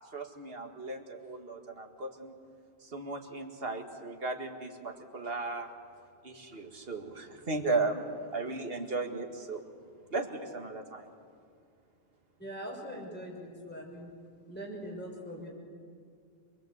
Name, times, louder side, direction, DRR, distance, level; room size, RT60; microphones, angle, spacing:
voice 1, 0.1-2.3 2.8-5.7 6.2-9.6 10.1-11.1, right 3 dB, 65° right, 4 dB, 2.1 m, -36 dB
voice 2, 12.4-14.1 14.5-15.5, equal, 10° left, -1 dB, 5.8 m, -42 dB
26.5 x 21.5 x 8.1 m, 2.2 s
omnidirectional pair, 1.1 m